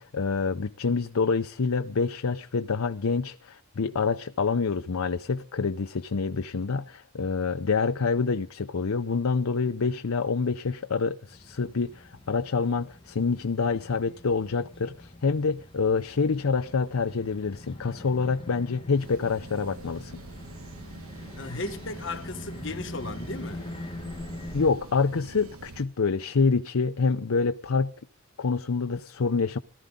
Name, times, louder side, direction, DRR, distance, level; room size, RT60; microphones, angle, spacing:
voice 1, 0.0-20.2 24.5-27.9 28.4-29.6, left 4 dB, 85° left, 0.6 m, -27 dB
sound 1, 11.3-24.7, left 1 dB, 25° left, 1.5 m, -43 dB
sound 2, 19.0-25.9, right 2 dB, 80° right, 1.3 m, -45 dB
voice 2, 21.4-23.7, left 2 dB, 60° left, 1.3 m, -36 dB
18.5 x 13.0 x 3.8 m
head